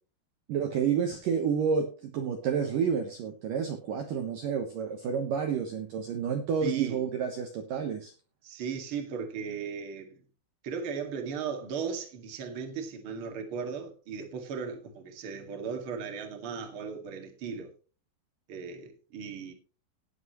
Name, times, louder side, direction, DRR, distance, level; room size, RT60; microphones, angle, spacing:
voice 1, 0.5-8.1, right 6 dB, 70° right, 2.0 m, -30 dB
voice 2, 6.6-7.0 8.4-10.2 10.6-17.7 18.5-19.5, right 6 dB, 45° right, 1.8 m, -36 dB
18.0 x 8.0 x 3.1 m
omnidirectional pair, 5.6 m